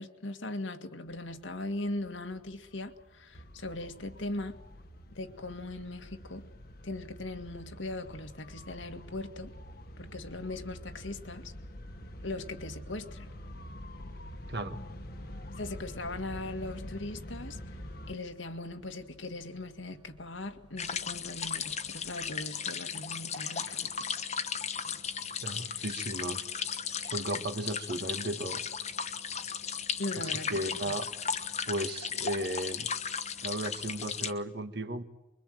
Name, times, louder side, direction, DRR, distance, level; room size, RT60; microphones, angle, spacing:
voice 1, 0.0-4.6 5.1-6.5 6.8-9.5 10.0-11.5 12.2-13.3 15.6-17.8 18.1-24.1 25.6-25.9 30.0-31.0, left 2 dB, 80° left, 2.0 m, -39 dB
sound 1, 1.1-18.1, equal, 50° left, 1.4 m, -46 dB
sound 2, 11.8-22.4, equal, 25° right, 1.8 m, -59 dB
voice 2, 14.5-14.8 25.4-26.5 27.0-28.6 30.2-31.1 31.7-32.9 33.4-35.0, right 1 dB, 60° right, 1.6 m, -35 dB
sound 3, 20.8-34.3, left 7 dB, 35° left, 1.2 m, -36 dB
24.5 x 23.5 x 7.7 m
head